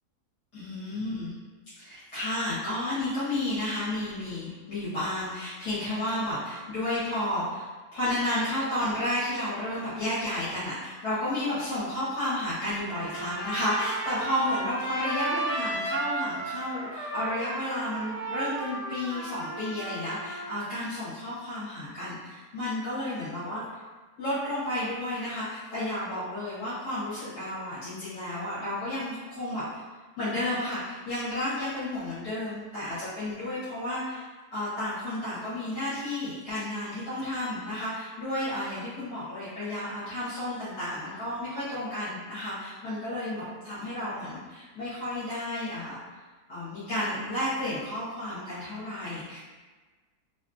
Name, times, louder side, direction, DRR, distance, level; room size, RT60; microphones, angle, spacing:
voice 1, 0.5-1.3 1.8-23.6 24.2-29.6 30.2-46.0 46.5-49.4, left 1 dB, 80° left, -13 dB, 1.8 m, -32 dB
Trumpet, 12.9-20.5, right 2 dB, 25° right, 1.5 m, -34 dB
3.2 x 2.9 x 2.4 m, 1.3 s
omnidirectional pair, 1.7 m